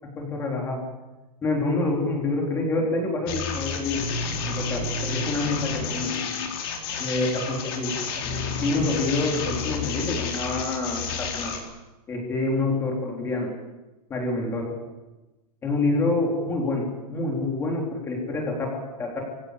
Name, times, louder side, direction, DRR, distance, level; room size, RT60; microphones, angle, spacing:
voice 1, 0.0-0.8 1.4-4.1 4.5-6.1 7.0-8.0 8.6-11.5 12.1-13.5 14.1-14.8 15.6-19.2, left 2 dB, 10° left, 0 dB, 4.0 m, -27 dB
sound 1, 3.3-11.6, left 5 dB, 35° left, 4.0 m, -30 dB
25.0 x 16.5 x 8.5 m, 1.1 s
supercardioid pair, 175°, 21 cm